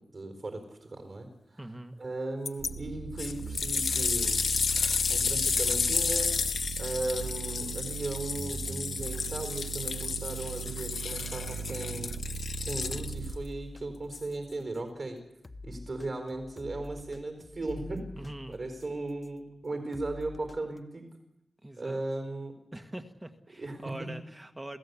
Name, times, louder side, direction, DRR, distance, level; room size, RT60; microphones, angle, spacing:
voice 1, 0.1-1.3 2.0-4.4 5.1-6.3 6.8-12.2 12.6-15.2 15.6-18.0 18.5-21.0 21.8-22.5 23.6-23.8, right 2 dB, 40° right, 5 dB, 4.4 m, -37 dB
voice 2, 1.6-2.0 18.2-18.6 21.6-22.0 22.7-24.8, right 1 dB, 15° right, 7 dB, 1.5 m, -43 dB
sound 1, 2.5-2.7 3.2-13.3 14.1-14.2, left 5 dB, 60° left, 1.1 m, -31 dB
sound 2, 2.6-13.4, right 5 dB, 85° right, 1.4 m, -39 dB
sound 3, 13.3-14.9 15.4-19.4 19.9-20.8, left 2 dB, 25° left, 0.9 m, -47 dB
27.5 x 16.5 x 8.4 m, 0.85 s
wide cardioid pair, 155°, 0 cm